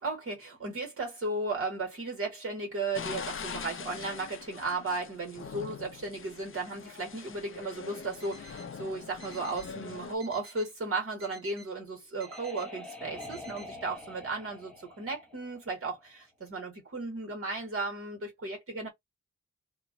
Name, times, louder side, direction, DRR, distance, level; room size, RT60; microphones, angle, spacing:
voice 1, 0.0-18.9, right 3 dB, 50° right, 1.8 m, -35 dB
sound 1, 2.9-10.1, left 6 dB, 45° left, 0.5 m, -43 dB
Alarm, 8.0-8.7 9.2-9.7 10.2-10.7 11.2-11.7 12.2-12.7 13.2-13.7, right 3 dB, 70° right, 1.4 m, -53 dB
sound 2, 11.7-16.2, left 2 dB, 5° left, 0.8 m, -46 dB
2.9 x 2.5 x 3.8 m
wide cardioid pair, 145°, 29 cm